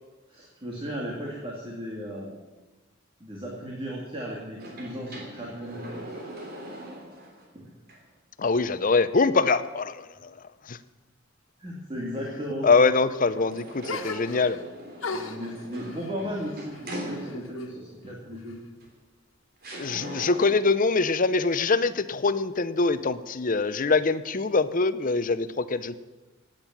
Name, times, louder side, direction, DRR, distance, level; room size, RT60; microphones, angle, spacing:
voice 1, 0.3-2.3 3.2-5.9 7.5-7.7 11.6-12.8 15.1-18.6, equal, 25° right, -3 dB, 2.4 m, -35 dB
sound 1, 4.5-7.5 7.9-8.0 13.3-17.7 18.8-18.9 19.6-20.8, equal, 50° right, 3.3 m, -41 dB
voice 2, 8.4-10.3 10.7-10.8 12.6-14.6 19.7-26.0, left 4 dB, 40° left, 13 dB, 0.7 m, -24 dB
sound 2, 13.9-14.7 15.0-17.7 18.0-18.9, left 3 dB, 80° left, 1.6 m, -38 dB
17.5 x 9.0 x 7.3 m, 1.2 s
head